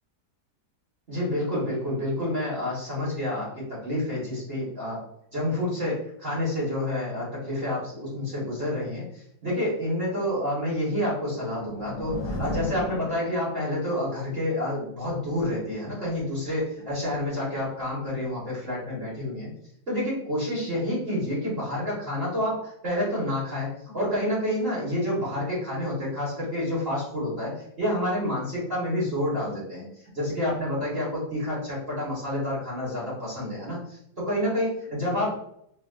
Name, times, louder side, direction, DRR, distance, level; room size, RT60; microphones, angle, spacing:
voice 1, 1.1-5.0 5.3-19.5 19.9-29.9 30.1-35.3, left 1 dB, 35° right, -8 dB, 1.6 m, -29 dB
sound 1, 11.2-13.8, left 2 dB, 80° left, 1.2 m, -35 dB
4.5 x 2.4 x 2.4 m, 0.70 s
omnidirectional pair, 1.8 m